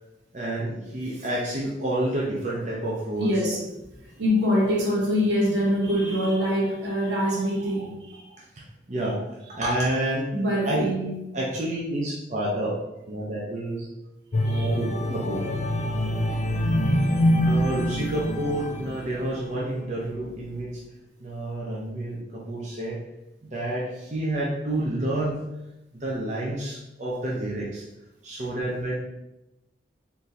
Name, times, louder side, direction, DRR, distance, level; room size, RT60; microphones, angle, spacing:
voice 1, 0.3-3.3 8.6-9.2 9.5-10.3 10.7-10.9 11.3-12.7 13.1-13.9 14.5-15.5 16.3-16.4 16.9-17.0 17.4-20.8 21.2-23.0 23.4-25.4 25.9-27.8 28.2-28.9, right 1 dB, 40° right, -5 dB, 0.7 m, -29 dB
voice 2, 3.2-3.7 4.0-8.3 10.3-11.2 14.4-14.8 16.9-17.6, equal, 75° right, -2 dB, 1.1 m, -25 dB
sound 1, 14.3-19.6 20.1-20.3, equal, 35° left, 0.4 m, -25 dB
4.3 x 2.8 x 3.2 m, 0.92 s
head